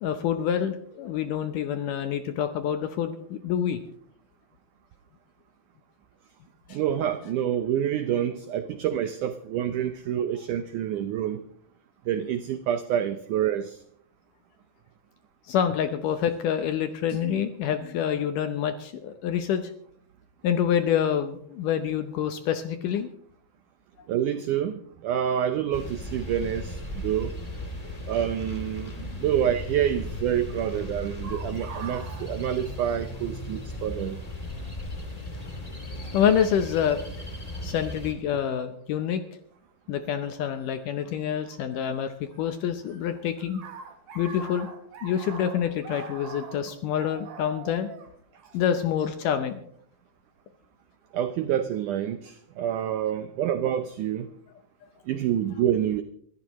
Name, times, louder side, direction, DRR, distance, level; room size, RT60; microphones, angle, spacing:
voice 1, 0.0-3.8 6.7-6.8 15.5-19.7 20.4-23.1 36.1-37.0 37.6-39.2 39.9-43.6 44.2-44.7 45.0-47.9 48.5-49.6, left 9 dB, 75° left, 8 dB, 2.0 m, -27 dB
voice 2, 6.7-11.4 12.1-13.8 17.2-17.5 24.1-27.3 28.1-34.2 51.1-54.3 55.1-56.0, right 10 dB, 90° right, 9 dB, 1.7 m, -27 dB
sound 1, 25.7-38.1, left 1 dB, 20° left, 1.1 m, -36 dB
sound 2, 31.2-33.3 33.6-33.7 34.7-34.9 36.0-36.2 36.9-37.4 40.0-40.1 41.5-42.4 42.6-49.2, right 4 dB, 65° right, 3.6 m, -43 dB
24.5 x 14.5 x 3.1 m, 0.63 s
omnidirectional pair, 4.6 m